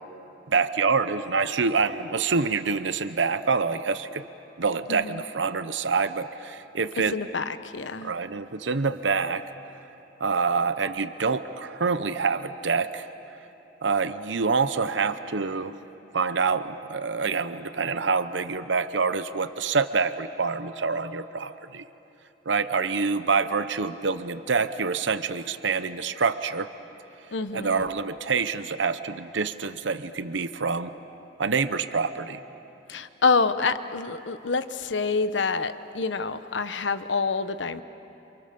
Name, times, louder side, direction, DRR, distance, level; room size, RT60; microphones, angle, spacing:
voice 1, 0.5-4.3 4.6-7.1 8.0-9.4 10.2-13.1 13.8-15.8 16.1-21.8 22.5-26.7 27.5-30.9 31.4-32.4, right 5 dB, 85° right, 12 dB, 0.8 m, -26 dB
voice 2, 4.9-5.2 7.0-8.1 27.3-27.9 32.9-37.8, left 4 dB, 80° left, 11 dB, 1.0 m, -27 dB
29.0 x 28.5 x 6.9 m, 3.0 s
head